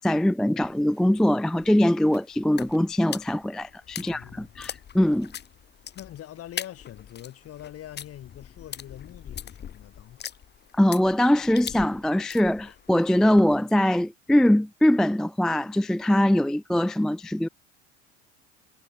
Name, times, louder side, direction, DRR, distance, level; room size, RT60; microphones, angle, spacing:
voice 1, 0.0-5.3 10.7-17.5, left 1 dB, ahead, 0.3 m, -22 dB
sound 1, 0.6-13.6, left 9 dB, 35° left, 1.5 m, -42 dB
voice 2, 4.0-4.5 5.9-10.2, left 12 dB, 50° left, 7.2 m, -43 dB
hypercardioid pair, 75°, 31 cm